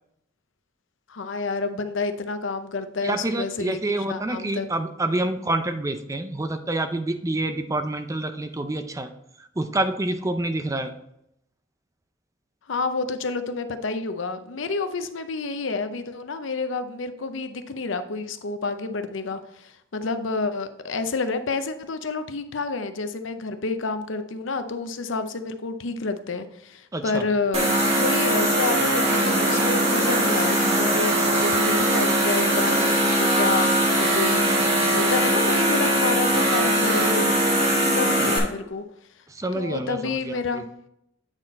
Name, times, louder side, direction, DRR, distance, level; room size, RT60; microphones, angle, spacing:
voice 1, 1.1-3.8 4.1-4.7 12.7-38.8 39.5-40.6, left 3 dB, 75° left, 9 dB, 0.6 m, -29 dB
voice 2, 3.0-9.1 9.6-10.9 26.9-27.2 39.3-40.6, right 2 dB, 15° right, 8 dB, 0.5 m, -27 dB
sound 1, 27.5-38.4, right 1 dB, 30° right, 1.6 m, -21 dB
8.9 x 4.1 x 4.2 m, 0.77 s
head